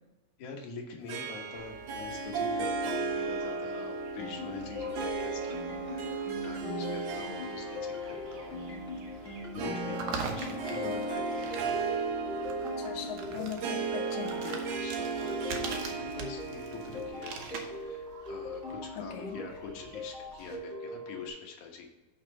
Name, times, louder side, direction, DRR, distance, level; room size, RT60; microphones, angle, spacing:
voice 1, 0.4-8.7 9.1-11.6 14.3-17.4 17.7-21.9, left 5 dB, 85° left, 1 dB, 2.7 m, -45 dB
Harp, 1.1-17.8, right 4 dB, 70° right, 2.0 m, -36 dB
sound 1, 1.6-20.6, right 5 dB, 85° right, 2.5 m, -46 dB
sound 2, 4.2-21.3, left 3 dB, 35° left, 1.3 m, -41 dB
voice 2, 10.8-11.1 12.8-14.7 19.0-19.5, left 8 dB, 65° left, 2 dB, 1.9 m, -40 dB
6.6 x 6.3 x 5.3 m, 1.1 s
omnidirectional pair, 3.3 m